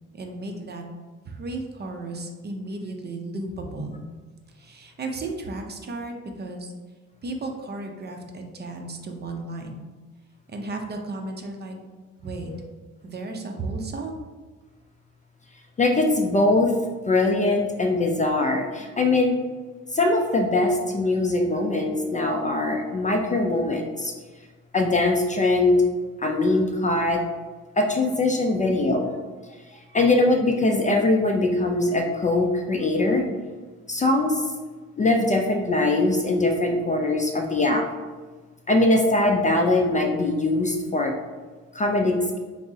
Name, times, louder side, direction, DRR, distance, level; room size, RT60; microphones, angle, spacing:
voice 1, 0.1-0.8 1.2-4.0 4.5-6.7 7.2-9.9 10.5-11.8 12.2-12.5 13.0-14.2, right 2 dB, 35° right, 3 dB, 0.5 m, -34 dB
voice 2, 15.8-16.7 17.1-19.3 19.9-24.1 24.7-25.8 26.2-27.2 27.8-29.2 29.9-33.2 33.9-34.5 35.0-37.8 38.7-41.1 41.7-42.4, left 2 dB, 25° left, 2 dB, 0.4 m, -22 dB
5.8 x 2.0 x 2.7 m, 1.4 s
cardioid pair, 90°, 30 cm